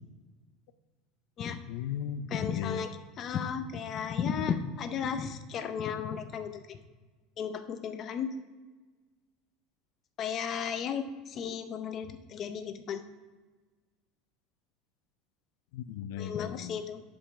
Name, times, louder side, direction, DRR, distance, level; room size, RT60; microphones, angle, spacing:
voice 1, 1.7-2.8 15.7-16.8, left 9 dB, 75° left, 12 dB, 0.5 m, -37 dB
voice 2, 2.3-2.9 3.2-6.8 7.4-8.3 10.2-13.0 16.2-17.0, left 7 dB, 30° left, 9 dB, 0.6 m, -34 dB
11.5 x 5.2 x 3.5 m, 1.3 s
supercardioid pair, 160°, 0 cm